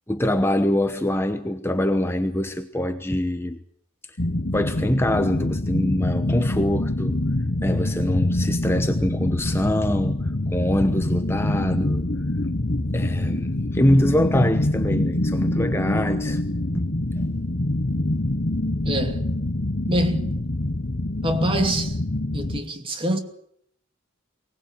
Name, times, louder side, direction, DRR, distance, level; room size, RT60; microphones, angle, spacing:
voice 1, 0.1-3.6 4.5-7.2 7.6-12.1 12.9-16.4 16.7-16.8, left 1 dB, 10° left, 1.0 m, -24 dB
sound 1, 4.2-22.6, left 1 dB, 50° left, 1.2 m, -25 dB
voice 2, 18.8-19.2 19.9-20.4 21.2-21.9 22.3-23.2, right 1 dB, 25° right, 2.6 m, -25 dB
23.5 x 19.0 x 9.0 m
head